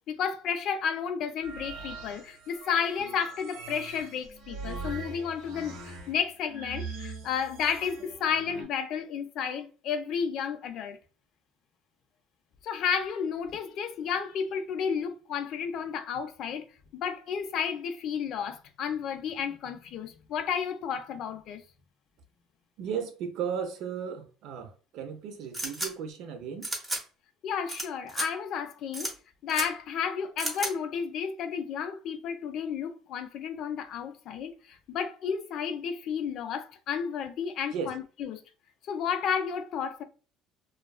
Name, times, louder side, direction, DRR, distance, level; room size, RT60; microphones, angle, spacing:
voice 1, 0.1-11.0 12.6-16.7 16.9-21.6 27.4-29.1 29.4-38.4 38.9-40.0, left 7 dB, 60° left, 0.4 m, -32 dB
sound 1, 1.4-8.6, right 3 dB, 90° right, 0.9 m, -42 dB
voice 2, 22.8-26.7 37.7-37.9, right 7 dB, 65° right, 0.5 m, -35 dB
sound 2, 25.5-25.9 26.6-27.0 27.7-27.8 28.1-28.3 28.9-29.1 29.5-29.7 30.4-30.7, right 2 dB, 15° right, 0.8 m, -32 dB
2.4 x 2.3 x 2.3 m
cardioid pair, 120°, 0 cm